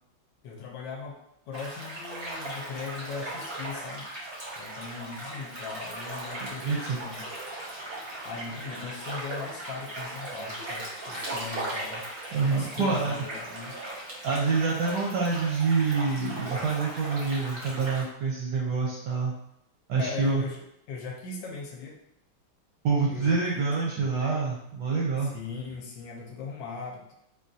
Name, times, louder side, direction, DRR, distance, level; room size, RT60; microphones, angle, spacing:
voice 1, 0.4-1.2 1.5-4.1 4.6-7.3 8.2-12.1 12.5-13.8 20.0-20.6 20.9-22.0 23.1-23.7 25.2-27.1, left 5 dB, 75° left, 0 dB, 1.2 m, -39 dB
sound 1, 1.5-18.0, right 1 dB, 50° right, 0.6 m, -38 dB
voice 2, 6.6-7.0 12.3-13.1 14.2-19.3 19.9-20.4 22.8-25.3, right 4 dB, 75° right, -2 dB, 1.1 m, -26 dB
3.7 x 2.3 x 2.6 m, 0.77 s
omnidirectional pair, 2.2 m